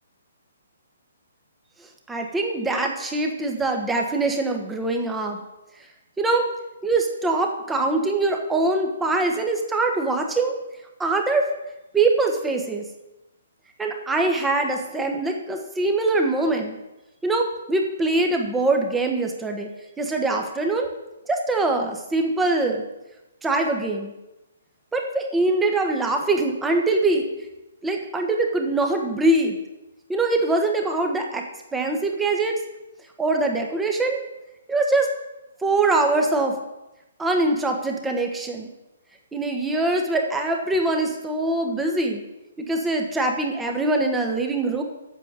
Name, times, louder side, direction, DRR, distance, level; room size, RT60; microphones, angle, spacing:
voice 1, 2.1-5.4 6.2-6.5 6.8-10.5 11.0-11.5 11.9-12.8 13.8-16.7 17.2-19.7 20.0-20.9 21.3-22.8 23.4-24.1 24.9-27.3 27.8-29.6 30.1-31.4 31.7-32.6 33.2-34.2 34.7-35.1 35.6-36.5 37.2-38.7 39.3-42.2 42.6-44.8, right 2 dB, 10° right, 2 dB, 1.4 m, -23 dB
8.4 x 7.0 x 7.7 m, 0.97 s
figure-of-eight pair, 130°, 0 cm